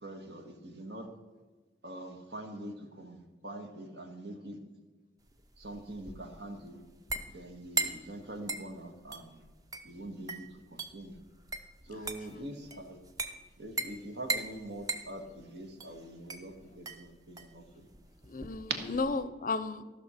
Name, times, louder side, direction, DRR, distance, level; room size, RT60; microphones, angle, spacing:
voice 1, 0.0-1.1 1.8-4.6 5.6-6.8 7.3-9.4 9.8-11.2 11.8-13.0 13.6-17.9, right 1 dB, 65° right, 5 dB, 1.6 m, -44 dB
sound 1, 5.3-19.2, right 3 dB, 20° right, 0.7 m, -40 dB
voice 2, 11.9-12.5 18.2-19.8, left 3 dB, 50° left, 14 dB, 0.6 m, -35 dB
14.5 x 6.3 x 5.7 m, 1.3 s
head